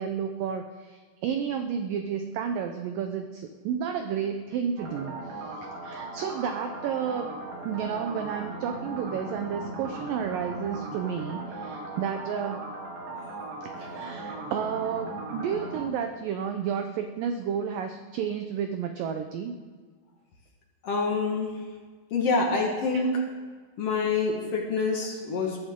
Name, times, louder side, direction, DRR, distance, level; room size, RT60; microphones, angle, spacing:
voice 1, 0.0-7.3 7.7-12.6 13.6-19.5 22.9-23.0, right 7 dB, 80° right, 6 dB, 2.0 m, -31 dB
sound 1, 4.8-15.9, right 2 dB, 60° right, 3.1 m, -38 dB
voice 2, 20.8-21.5 22.1-23.2 23.8-25.6, left 3 dB, 55° left, 0 dB, 1.8 m, -26 dB
21.5 x 13.0 x 3.7 m, 1.5 s
omnidirectional pair, 4.8 m